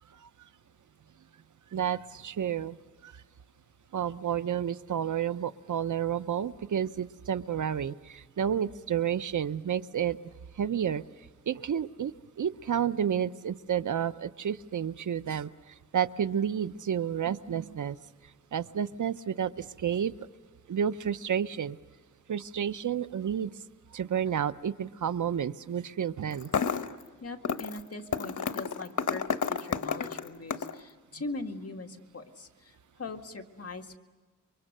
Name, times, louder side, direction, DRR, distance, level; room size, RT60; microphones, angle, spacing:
voice 1, 1.7-2.8 3.0-3.2 3.9-10.2 10.6-11.0 11.5-18.0 18.5-20.1 20.7-21.8 22.3-23.5 23.9-26.5, right 8 dB, 85° right, 14 dB, 0.7 m, -30 dB
sound 1, 26.3-27.0 27.4-27.8 28.1-30.8, left 6 dB, 90° left, 1.0 m, -31 dB
voice 2, 27.2-34.0, left 3 dB, 55° left, 3 dB, 2.0 m, -41 dB
29.0 x 24.0 x 6.7 m, 1.3 s
wide cardioid pair, 80°, 30 cm